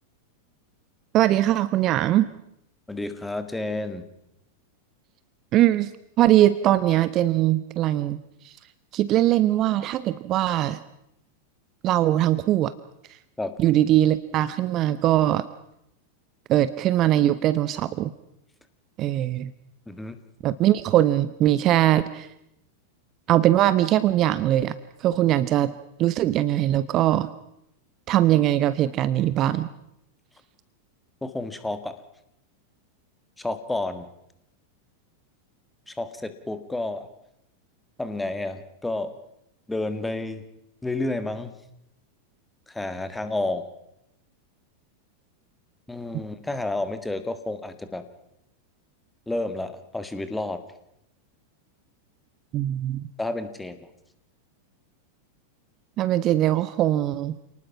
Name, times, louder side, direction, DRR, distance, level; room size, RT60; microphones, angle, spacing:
voice 1, 1.1-2.3 5.5-5.9 6.2-8.5 8.9-10.8 11.8-12.7 13.6-15.4 16.5-18.1 19.0-19.5 20.4-22.3 23.3-25.7 26.0-27.3 28.1-29.7 52.5-53.1 56.0-57.4, right 13 dB, 35° right, 15 dB, 0.8 m, -21 dB
voice 2, 2.9-4.1 13.4-13.6 19.9-20.2 31.2-31.9 33.4-34.1 35.9-37.1 38.0-39.1 39.7-40.4 40.8-41.5 42.7-43.6 45.9-48.0 49.3-50.6 53.2-53.9, left 2 dB, 5° left, 10 dB, 1.9 m, -30 dB
28.0 x 19.5 x 5.8 m, 0.81 s
figure-of-eight pair, 90°, 0 cm